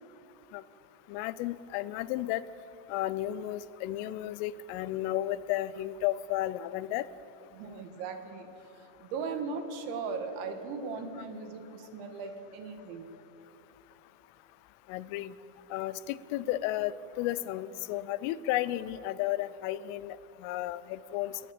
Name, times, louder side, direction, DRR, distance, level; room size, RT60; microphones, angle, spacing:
voice 1, 1.1-2.4 2.9-7.1 14.9-15.3 15.7-21.4, left 14 dB, 90° left, 17 dB, 3.3 m, -33 dB
voice 2, 7.5-8.5 8.8-13.1, right 4 dB, 70° right, 6 dB, 3.8 m, -38 dB
29.5 x 13.0 x 8.8 m, 2.8 s
omnidirectional pair, 5.7 m